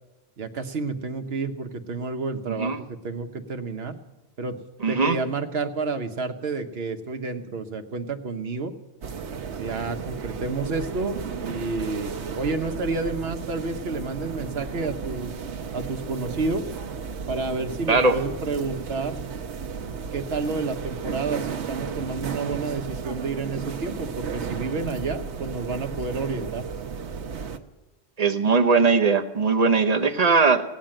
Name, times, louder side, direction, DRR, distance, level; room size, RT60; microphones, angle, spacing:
voice 1, 0.4-3.9 4.4-4.6 4.9-8.7 9.6-15.3 15.7-16.7 17.3-19.2 20.1-26.6, right 3 dB, 65° right, 7 dB, 1.3 m, -30 dB
voice 2, 2.5-2.8 4.8-5.2 17.9-18.2 28.2-30.6, right 4 dB, 40° right, 6 dB, 0.9 m, -20 dB
sound 1, 9.0-27.6, right 6 dB, 85° right, 1.2 m, -34 dB
17.5 x 8.9 x 7.7 m, 1.0 s
omnidirectional pair, 1.1 m